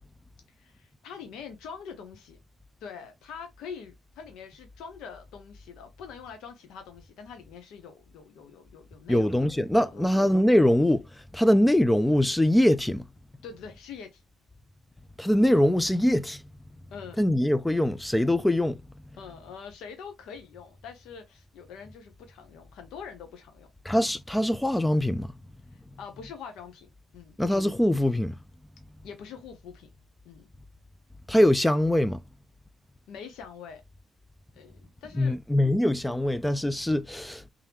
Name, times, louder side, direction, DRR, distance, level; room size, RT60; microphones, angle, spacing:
voice 1, 0.6-2.4 2.8-9.5 9.8-10.1 13.4-14.2 16.9-17.2 19.2-24.0 26.0-27.4 29.0-29.9 30.2-30.5 33.1-33.8 34.5-35.3, left 6 dB, 85° left, 0.8 m, -44 dB
voice 2, 9.1-11.1 11.3-13.1 15.2-16.4 17.2-18.8 23.8-25.3 27.4-28.4 31.3-32.2 35.1-37.4, left 1 dB, 10° left, 0.3 m, -23 dB
3.6 x 2.9 x 3.5 m
cardioid pair, 90°, 0 cm